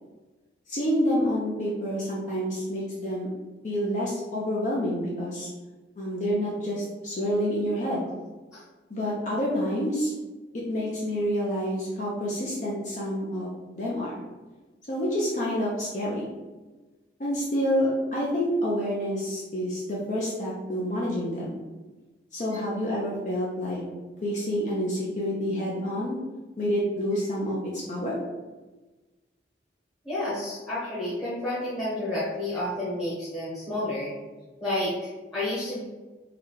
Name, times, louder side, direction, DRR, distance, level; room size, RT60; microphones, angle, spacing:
voice 1, 0.7-3.3 3.6-5.5 6.0-8.0 8.9-10.1 10.7-13.5 13.8-14.2 14.9-16.3 17.2-21.5 22.3-23.8 24.2-26.2 26.6-28.2, equal, 40° left, -5 dB, 0.6 m, -28 dB
voice 2, 30.0-34.1 34.6-35.8, left 1 dB, 15° left, -11 dB, 1.0 m, -30 dB
3.8 x 2.2 x 3.2 m, 1.2 s
head